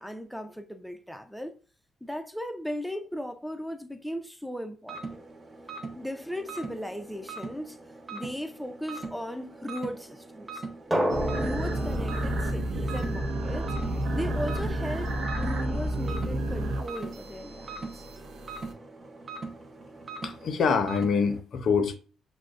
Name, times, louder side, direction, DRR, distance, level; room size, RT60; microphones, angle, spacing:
voice 1, 0.0-1.6 2.0-5.2 6.0-7.8 8.1-10.6 11.4-13.7 14.1-18.0, equal, ahead, 0.5 m, -37 dB
sound 1, 4.9-21.4, right 3 dB, 35° right, 0.7 m, -42 dB
Drum, 10.9-13.6, equal, 15° right, 1.1 m, -31 dB
sound 2, 11.1-18.7, right 1 dB, 70° right, 0.7 m, -31 dB
voice 2, 20.2-22.0, left 5 dB, 60° left, 0.6 m, -25 dB
6.2 x 2.1 x 2.4 m
cardioid pair, 90°, 0 cm